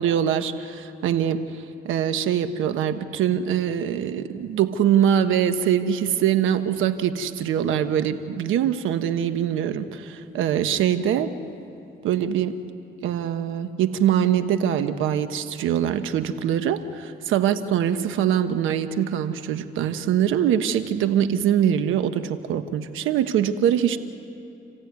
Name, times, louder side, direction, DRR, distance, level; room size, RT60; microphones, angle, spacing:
voice 1, 0.0-11.3 12.0-12.6 13.0-24.0, right 9 dB, 85° right, 9 dB, 1.2 m, -23 dB
28.5 x 16.0 x 9.6 m, 2.6 s
cardioid pair, 90°, 20 cm